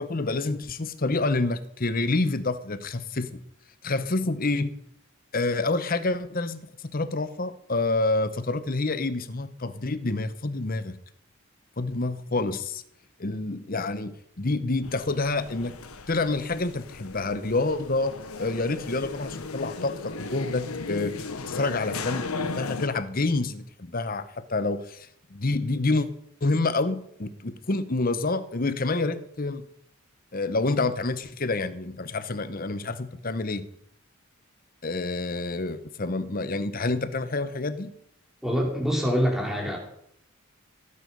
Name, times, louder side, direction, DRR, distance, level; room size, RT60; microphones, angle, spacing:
voice 1, 0.0-3.4 3.8-4.7 5.3-11.0 11.8-12.8 13.2-15.7 16.1-26.1 26.4-29.6 30.3-33.7 34.8-37.9, left 3 dB, 40° left, 12 dB, 0.9 m, -28 dB
sound 1, 14.8-22.9, left 3 dB, 85° left, 1.2 m, -36 dB
voice 2, 38.4-39.8, equal, ahead, 0 dB, 3.1 m, -25 dB
17.0 x 9.4 x 5.4 m, 0.73 s
head